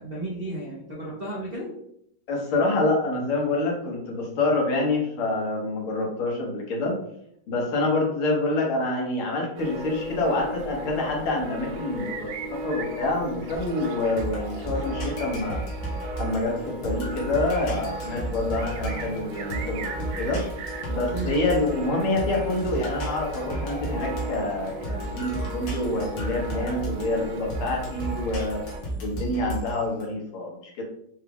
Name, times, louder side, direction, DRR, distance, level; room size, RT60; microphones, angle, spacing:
voice 1, 0.0-1.8 21.1-21.4, right 1 dB, 55° right, -6 dB, 0.6 m, -33 dB
voice 2, 2.3-7.0 7.5-15.6 16.2-20.4 20.9-28.6 29.0-30.8, left 2 dB, 80° left, -1 dB, 2.0 m, -27 dB
sound 1, 9.6-28.8, right 1 dB, 85° right, 1.5 m, -36 dB
sound 2, 13.5-30.0, right 2 dB, 65° left, 1.6 m, -34 dB
4.6 x 2.3 x 3.4 m, 0.72 s
omnidirectional pair, 2.3 m